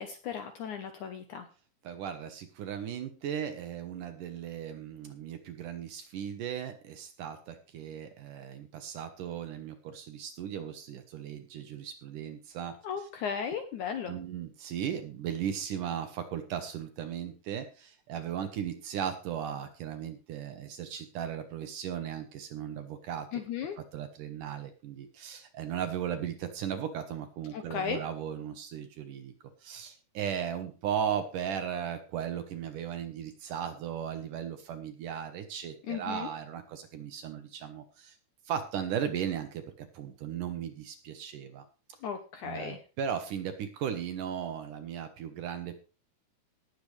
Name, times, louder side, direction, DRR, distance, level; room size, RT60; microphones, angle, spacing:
voice 1, 0.0-1.5 12.8-14.1 23.3-23.8 27.5-28.0 35.9-36.3 42.0-42.8, left 7 dB, 70° left, 7 dB, 2.0 m, -36 dB
voice 2, 1.8-12.8 14.1-23.3 23.9-29.3 29.6-38.2 38.5-41.6 42.4-45.7, right 9 dB, 65° right, 8 dB, 2.3 m, -36 dB
18.5 x 8.0 x 3.3 m, 0.33 s
omnidirectional pair, 4.5 m